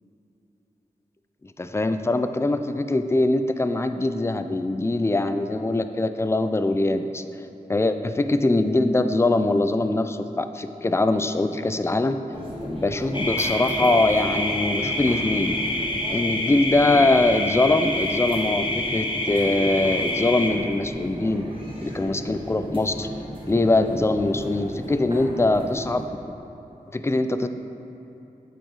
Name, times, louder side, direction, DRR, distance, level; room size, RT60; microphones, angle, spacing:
voice 1, 1.4-7.2 7.7-12.2 12.6-15.6 16.1-21.5 21.8-23.1 23.5-26.0 26.9-27.5, left 2 dB, 15° left, 9 dB, 0.4 m, -22 dB
sound 1, 12.3-26.0, right 1 dB, 35° right, 1.6 m, -35 dB
sound 2, 13.1-20.5, left 1 dB, 35° left, 0.8 m, -27 dB
8.6 x 4.9 x 3.9 m, 2.9 s
wide cardioid pair, 60°, 15 cm